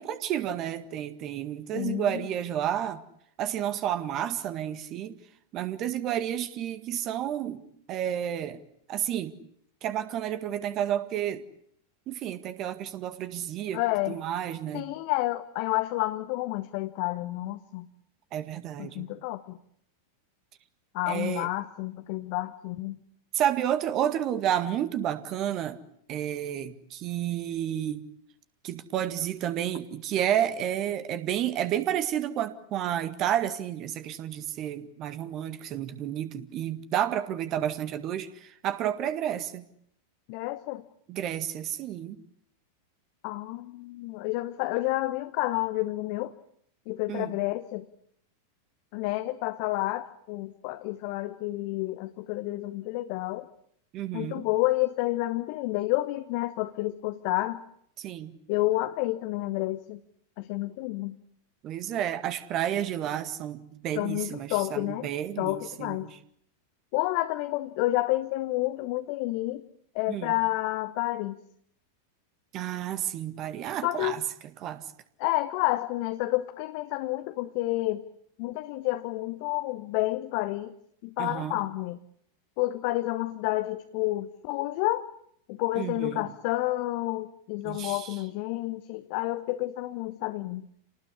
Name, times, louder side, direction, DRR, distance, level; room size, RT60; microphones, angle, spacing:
voice 1, 0.0-3.0 3.4-5.2 5.5-7.6 7.9-8.6 8.9-9.4 9.8-11.4 12.1-13.8 14.1-14.9 18.3-19.1 21.1-21.5 23.3-25.8 26.1-28.1 28.6-39.6 41.1-42.2 47.1-47.4 53.9-54.5 58.0-58.3 61.6-66.2 70.1-70.3 72.5-74.2 74.6-74.8 81.2-81.6 85.8-86.3 87.6-88.1, right 10 dB, 35° right, 1.8 m, -31 dB
voice 2, 1.7-2.3 13.7-14.2 14.7-17.9 18.8-19.6 20.9-23.0 40.3-40.8 43.2-46.3 46.9-47.9 48.9-53.5 54.1-57.6 58.5-60.0 60.4-61.2 63.9-65.1 65.4-66.1 66.9-69.6 69.9-71.4 73.8-74.2 75.2-78.1 78.4-80.7 81.0-82.0 82.6-85.1 85.5-90.7, left 18 dB, 45° left, 1.1 m, -30 dB
28.5 x 19.5 x 9.9 m
figure-of-eight pair, 90°, 0 cm